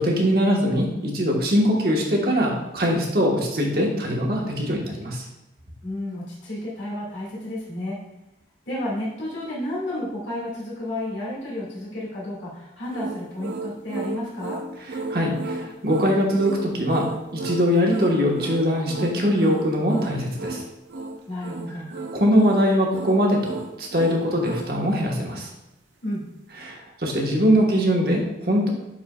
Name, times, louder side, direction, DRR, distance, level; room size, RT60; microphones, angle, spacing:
voice 1, 0.0-5.2 15.1-17.1 17.3-20.6 22.1-25.5 26.6-28.7, equal, 55° right, -1 dB, 1.3 m, -22 dB
voice 2, 5.8-8.0 8.7-14.6 21.3-21.9 26.0-26.2, left 1 dB, 90° left, -6 dB, 2.0 m, -31 dB
sound 1, 12.9-24.8, right 3 dB, 80° right, 0.6 m, -33 dB
10.0 x 4.3 x 2.3 m, 0.97 s
head